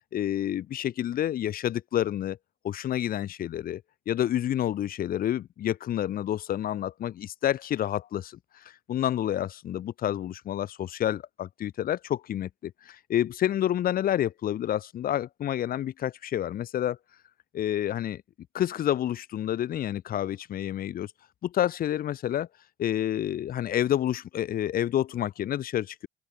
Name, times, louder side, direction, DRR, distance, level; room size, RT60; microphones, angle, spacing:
voice 1, 0.1-2.4 2.6-17.0 17.5-18.2 18.5-21.1 21.4-22.5 22.8-26.1, left 11 dB, 60° left, 2.7 m, -29 dB
open air
cardioid pair, 110°, 17 cm